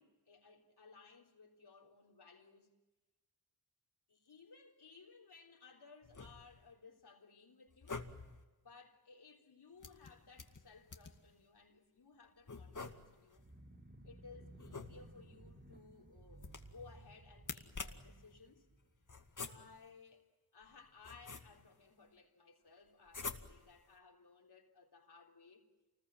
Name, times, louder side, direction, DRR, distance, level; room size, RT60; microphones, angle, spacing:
voice 1, 0.0-2.7 4.1-8.1 8.6-13.5 14.0-18.7 19.5-20.3 20.5-25.7, left 4 dB, 85° left, 3.8 m, -60 dB
sound 1, 6.0-6.7 7.7-8.4 9.8-11.3 12.5-13.4 14.6-15.4 16.4-16.9 17.4-18.2 19.1-19.9 20.6-21.8 23.1-23.8, left 4 dB, 50° left, 2.3 m, -48 dB
sound 2, 13.3-19.3, right 1 dB, 30° right, 2.9 m, -58 dB
28.5 x 20.5 x 7.8 m
cardioid pair, 50°, 39 cm